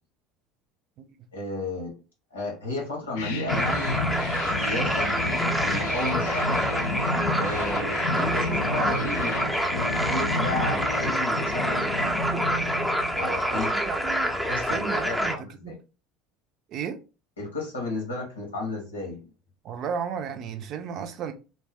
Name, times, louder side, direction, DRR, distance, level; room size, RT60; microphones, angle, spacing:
voice 1, 1.3-1.9 2.3-5.1 5.6-6.6 7.4-12.2 13.1-13.7 14.3-15.8 17.4-19.2, left 2 dB, 90° left, 1.1 m, -33 dB
sound 1, 3.2-13.7, left 2 dB, 70° left, 0.4 m, -31 dB
sound 2, 3.5-15.4, equal, ahead, 0.6 m, -27 dB
voice 2, 13.5-15.4 15.6-15.8 16.7-17.0 19.6-21.3, right 7 dB, 50° right, 0.5 m, -34 dB
2.5 x 2.1 x 3.5 m
hypercardioid pair, 70°, 0 cm